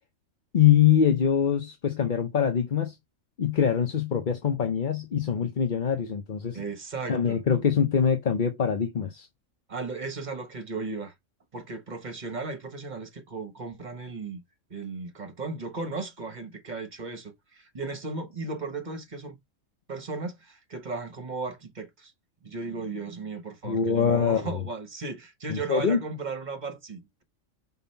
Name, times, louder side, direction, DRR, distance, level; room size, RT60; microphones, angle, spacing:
voice 1, 0.5-3.0 3.4-6.6 7.1-9.3 23.6-24.5 25.5-26.0, left 8 dB, 45° left, 0.8 m, -24 dB
voice 2, 6.5-7.4 9.7-11.1 11.5-14.4 14.7-19.4 19.9-22.1 22.4-27.2, right 3 dB, 35° right, 1.5 m, -36 dB
5.4 x 4.0 x 5.6 m
omnidirectional pair, 1.4 m